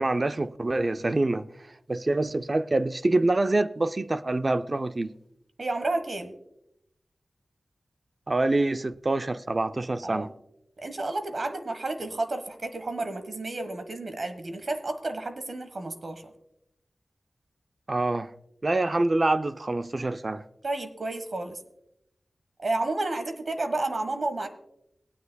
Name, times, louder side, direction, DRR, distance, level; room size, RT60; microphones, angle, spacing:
voice 1, 0.0-1.5 1.9-5.1 8.3-10.3 17.9-18.3 18.6-20.4, right 2 dB, 35° right, 0.4 m, -26 dB
voice 2, 5.6-6.3 10.0-10.3 10.8-16.3 20.6-21.6 22.6-24.5, right 2 dB, 55° right, 1.3 m, -31 dB
19.5 x 9.3 x 2.2 m
wide cardioid pair, 105°, 0 cm